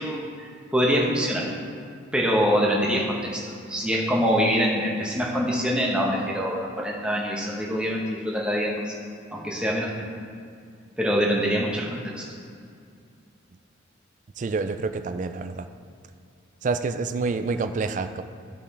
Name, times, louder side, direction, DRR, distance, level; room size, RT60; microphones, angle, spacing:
voice 1, 0.0-1.5 2.1-3.4 3.7-9.0 9.3-10.1 11.0-12.3, equal, 5° right, -3 dB, 1.0 m, -24 dB
voice 2, 14.4-15.7 16.6-18.2, right 4 dB, 40° right, 9 dB, 0.3 m, -27 dB
12.5 x 5.3 x 3.3 m, 2.3 s
head